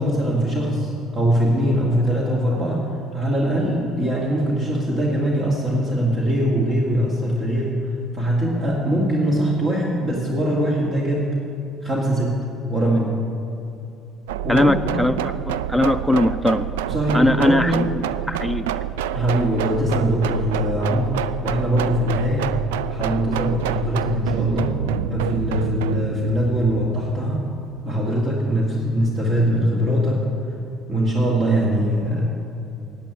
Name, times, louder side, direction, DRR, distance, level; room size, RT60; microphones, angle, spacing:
voice 1, 0.0-7.9 8.1-11.4 11.8-12.4 12.7-13.2 14.4-14.9 16.9-17.8 19.1-22.5 22.9-24.8 25.1-27.5 27.8-30.3 30.9-32.4, equal, 45° right, -3 dB, 2.4 m, -22 dB
sound 1, 14.3-28.0, right 10 dB, 85° right, 0.3 m, -27 dB
voice 2, 14.5-16.7 17.1-18.0 18.3-18.7, left 1 dB, ahead, 12 dB, 0.5 m, -20 dB
10.5 x 7.9 x 9.2 m, 2.6 s
hypercardioid pair, 65°, 0 cm